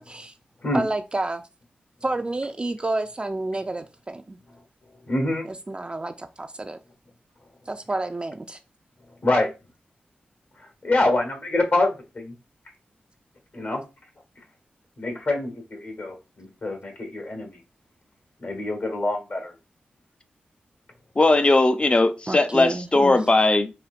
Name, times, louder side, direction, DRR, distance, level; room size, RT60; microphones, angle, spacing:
voice 1, 0.7-1.4 2.0-4.4 5.5-6.8 7.7-8.6 22.3-23.2, right 2 dB, 30° right, 0.3 m, -30 dB
voice 2, 5.1-5.5 9.2-9.5 10.6-12.3 13.5-13.8 15.0-17.6 18.4-19.5, left 2 dB, 60° left, 1.3 m, -25 dB
voice 3, 21.2-23.7, left 2 dB, 30° left, 0.5 m, -19 dB
4.2 x 2.5 x 2.4 m
cardioid pair, 50°, 4 cm